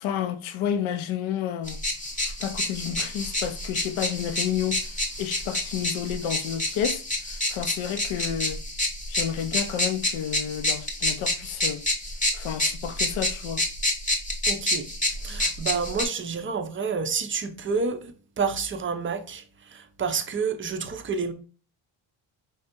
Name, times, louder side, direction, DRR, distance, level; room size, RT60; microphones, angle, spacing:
voice 1, 0.0-1.8 2.2-8.6 9.1-11.8 12.3-13.6, left 9 dB, 70° left, 0.6 m, -30 dB
sound 1, 1.7-16.0, left 1 dB, 15° left, 0.8 m, -28 dB
voice 2, 14.5-14.9 15.2-19.4 19.7-21.3, right 5 dB, 25° right, 0.4 m, -29 dB
4.8 x 3.2 x 2.8 m
cardioid pair, 130°, 50 cm